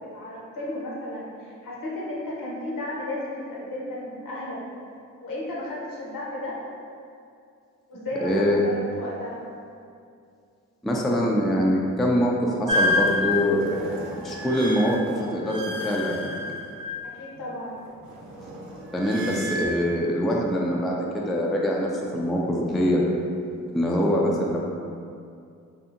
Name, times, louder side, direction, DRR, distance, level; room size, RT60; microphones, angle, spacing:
voice 1, 0.0-4.6 5.2-6.6 7.9-9.4 17.0-17.8, left 1 dB, 65° left, -5 dB, 0.8 m, -34 dB
voice 2, 8.2-8.6 10.8-16.3 18.9-23.0 23.7-24.6, equal, ahead, -2 dB, 0.3 m, -24 dB
sound 1, 12.7-17.4 17.7-19.7, left 2 dB, 60° right, 0.6 m, -29 dB
2.7 x 2.4 x 2.5 m, 2.4 s
supercardioid pair, 40°, 35 cm